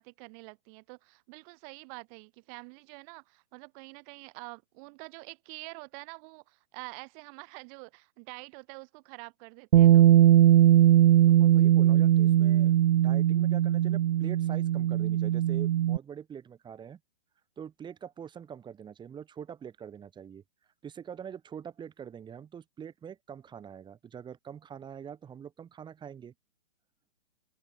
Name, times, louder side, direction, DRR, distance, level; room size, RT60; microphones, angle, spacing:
voice 1, 0.0-10.1, right 39 dB, 30° right, 5.2 m, -47 dB
Bass guitar, 9.7-16.0, right 12 dB, 50° right, 1.1 m, -20 dB
voice 2, 11.3-17.0 17.6-20.4 20.8-26.3, right 8 dB, 15° right, 4.4 m, -44 dB
hypercardioid pair, 135°, 34 cm